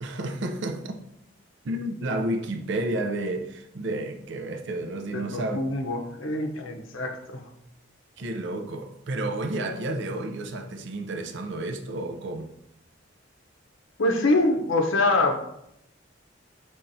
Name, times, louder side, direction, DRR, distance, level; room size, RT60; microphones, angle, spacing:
voice 1, 0.0-1.0 1.6-5.6 8.2-12.5, right 1 dB, 65° right, 0.5 m, -31 dB
voice 2, 5.1-7.5 14.0-15.4, left 2 dB, 80° left, 0.7 m, -25 dB
5.6 x 3.5 x 2.6 m
head